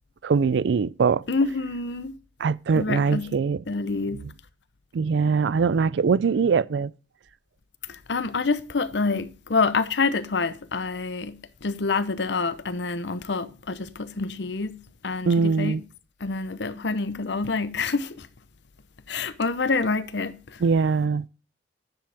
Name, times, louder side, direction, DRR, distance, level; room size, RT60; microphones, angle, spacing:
voice 1, 0.2-1.2 2.4-3.6 4.9-6.9 15.3-15.8 20.6-21.3, right 5 dB, 85° right, 0.4 m, -22 dB
voice 2, 1.3-2.2 2.7-3.3 3.7-4.3 7.9-15.8 16.2-18.3 19.1-20.6, left 4 dB, 80° left, 0.8 m, -27 dB
10.5 x 7.5 x 3.5 m
head